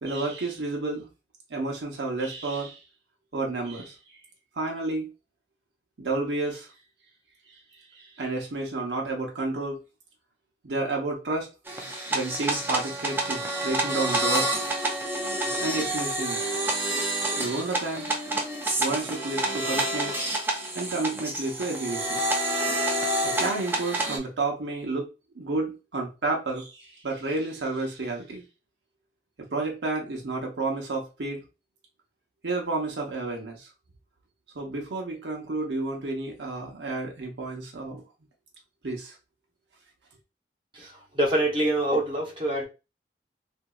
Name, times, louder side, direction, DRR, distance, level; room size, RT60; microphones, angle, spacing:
voice 1, 0.0-1.1 1.5-2.8 3.3-4.2 4.6-5.1 6.0-6.7 7.9-9.8 10.6-11.5 12.1-14.5 15.6-16.4 17.4-18.1 18.8-20.1 20.7-22.3 23.2-25.1 25.3-28.4 29.4-31.4 32.4-33.7 34.5-38.0 38.8-39.2, right 2 dB, 85° right, 0.8 m, -31 dB
sound 1, 11.7-24.2, right 1 dB, 10° right, 0.5 m, -28 dB
voice 2, 40.7-42.7, right 1 dB, 30° right, 1.0 m, -25 dB
2.9 x 2.6 x 2.3 m
head